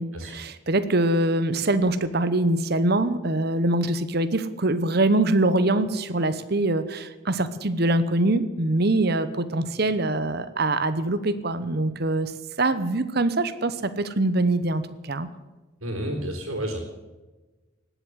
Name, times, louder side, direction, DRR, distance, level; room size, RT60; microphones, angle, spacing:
voice 1, 0.0-12.3 12.6-15.3, right 2 dB, 50° right, 12 dB, 0.9 m, -24 dB
voice 2, 15.8-16.8, right 1 dB, 90° right, -1 dB, 3.4 m, -30 dB
18.5 x 8.1 x 7.9 m, 1.2 s
head